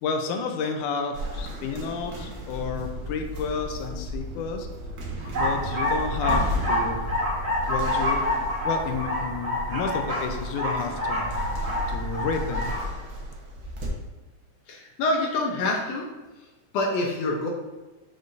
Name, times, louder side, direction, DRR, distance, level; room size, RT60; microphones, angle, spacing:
voice 1, 0.0-4.7 5.3-7.0 7.7-8.2 8.7-11.2 11.9-12.7, left 5 dB, 90° left, 5 dB, 2.1 m, -31 dB
sound 1, 1.1-13.9, equal, 60° right, 1.2 m, -35 dB
sound 2, 2.6-12.6, right 2 dB, 80° right, 2.0 m, -38 dB
sound 3, 5.2-12.8, left 1 dB, 35° right, 2.4 m, -28 dB
voice 2, 14.7-16.1 16.4-17.5, left 2 dB, 70° left, -1 dB, 1.7 m, -27 dB
7.8 x 5.4 x 2.6 m, 1.2 s
omnidirectional pair, 3.5 m